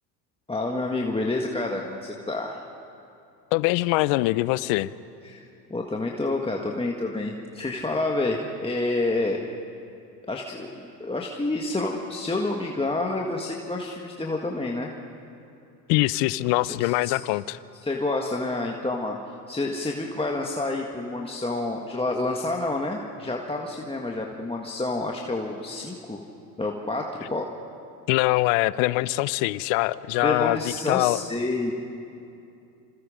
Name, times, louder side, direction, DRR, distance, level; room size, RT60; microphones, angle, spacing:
voice 1, 0.5-2.6 5.2-9.4 10.3-14.9 16.6-17.2 17.8-19.2 19.5-26.2 26.6-27.5 30.2-31.7, left 2 dB, 10° left, 0 dB, 1.8 m, -28 dB
voice 2, 3.5-4.9 15.9-17.6 28.1-30.6 30.9-31.2, left 19 dB, 60° left, 19 dB, 0.8 m, -23 dB
27.0 x 27.0 x 5.2 m, 2.7 s
hypercardioid pair, 80°, 48 cm